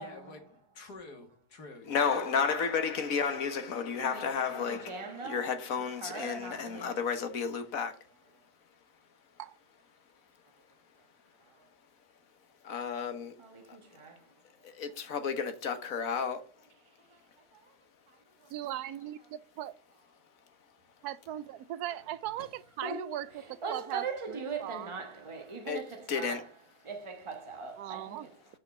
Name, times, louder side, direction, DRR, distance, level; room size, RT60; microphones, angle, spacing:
voice 1, 0.0-2.1, left 3 dB, 85° left, 2.5 m, -49 dB
voice 2, 1.9-7.9 12.6-13.3 14.6-16.4 25.7-25.8 26.1-26.4, left 6 dB, 60° left, 1.6 m, -32 dB
voice 3, 4.0-7.1 13.4-14.2 17.1-17.2 17.5-17.6 18.4-18.5 21.9-22.0 22.4-22.5 22.8-28.4, right 4 dB, 20° right, 1.3 m, -41 dB
voice 4, 18.5-19.7 21.0-24.9 27.8-28.3, right 12 dB, 80° right, 1.1 m, -39 dB
6.3 x 5.9 x 6.0 m
omnidirectional pair, 1.7 m